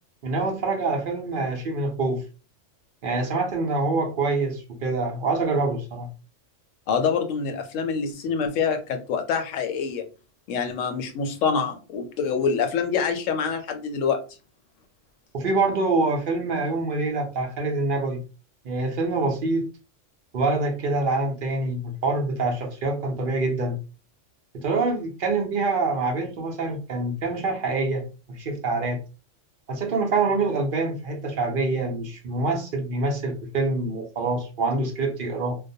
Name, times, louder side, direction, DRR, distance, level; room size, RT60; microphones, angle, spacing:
voice 1, 0.2-2.2 3.0-6.1 15.3-18.2 18.6-19.7 20.3-23.8 24.5-29.0 29.7-35.6, right 3 dB, 55° right, 0.7 m, -25 dB
voice 2, 6.9-10.1 10.5-14.2, left 6 dB, 90° left, 1.0 m, -26 dB
2.3 x 2.1 x 2.6 m
omnidirectional pair, 1.3 m